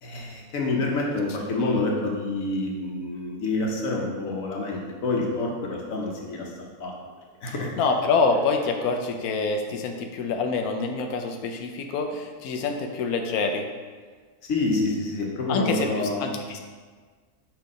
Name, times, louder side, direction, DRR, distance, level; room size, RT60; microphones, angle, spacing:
voice 1, 0.0-6.5 6.8-6.9 7.4-7.7 8.3-8.4 14.5-16.3, left 2 dB, 70° left, -1 dB, 1.4 m, -27 dB
voice 2, 7.8-13.7 15.5-16.6, left 4 dB, 85° left, 4 dB, 1.1 m, -26 dB
6.0 x 3.4 x 5.0 m, 1.5 s
omnidirectional pair, 1.5 m